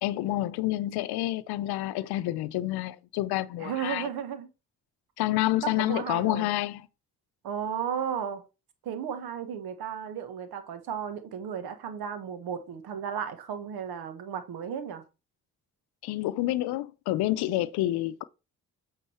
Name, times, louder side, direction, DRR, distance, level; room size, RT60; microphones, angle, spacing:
voice 1, 0.0-4.1 5.2-6.9 16.0-18.2, left 16 dB, 80° left, 0.6 m, -28 dB
voice 2, 3.6-4.5 5.6-6.5 7.4-8.4 8.8-15.0, right 8 dB, 75° right, 1.4 m, -34 dB
8.4 x 3.9 x 4.4 m
supercardioid pair, 50°, 38 cm